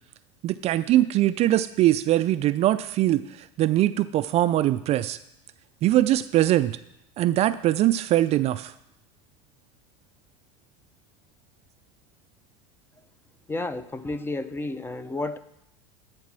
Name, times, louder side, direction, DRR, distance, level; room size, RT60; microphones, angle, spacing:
voice 1, 0.4-5.2 5.8-6.8 7.2-8.7, right 14 dB, 40° right, 13 dB, 0.3 m, -22 dB
voice 2, 13.5-15.4, left 2 dB, 15° left, 13 dB, 0.5 m, -31 dB
11.0 x 4.1 x 6.1 m, 0.80 s
hypercardioid pair, 95°, 17 cm